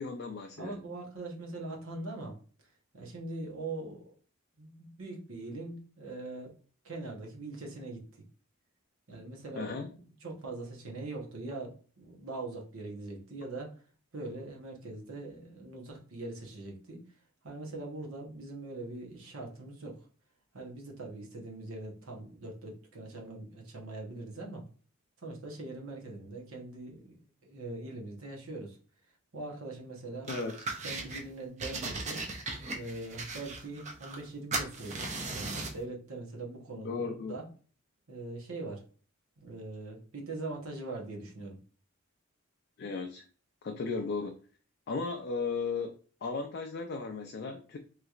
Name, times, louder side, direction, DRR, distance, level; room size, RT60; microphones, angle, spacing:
voice 1, 0.0-0.8 9.6-9.9 30.3-30.7 36.8-37.3 42.8-43.2 43.6-44.4 44.9-45.9 46.2-47.8, left 4 dB, 50° left, 4 dB, 0.3 m, -35 dB
voice 2, 0.6-2.4 2.9-4.2 4.6-6.5 6.8-8.2 9.1-13.8 14.1-17.0 17.4-20.0 20.5-24.6 25.2-28.8 29.3-30.3 30.8-32.2 32.7-37.0 37.3-37.4 38.1-38.8 39.4-41.6, right 2 dB, 85° right, 0 dB, 0.9 m, -42 dB
sound 1, 30.3-31.2 31.6-34.3 34.5-35.8, right 3 dB, 35° right, 0.5 m, -37 dB
3.2 x 2.9 x 2.4 m, 0.41 s
head